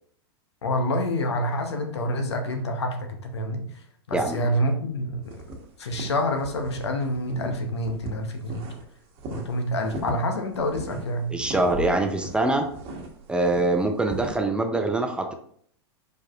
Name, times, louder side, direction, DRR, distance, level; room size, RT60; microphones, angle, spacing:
voice 1, 0.6-3.6 4.1-5.4 5.8-8.7 9.3-11.3, left 1 dB, 90° left, 5 dB, 0.9 m, -27 dB
voice 2, 4.1-4.5 11.3-12.7 13.3-15.3, right 2 dB, 5° right, 5 dB, 0.5 m, -24 dB
sound 1, 5.3-6.8 7.1-8.9 9.2-14.4, right 1 dB, 45° right, 1.1 m, -38 dB
4.7 x 4.7 x 2.4 m, 0.62 s
hypercardioid pair, 110°, 14 cm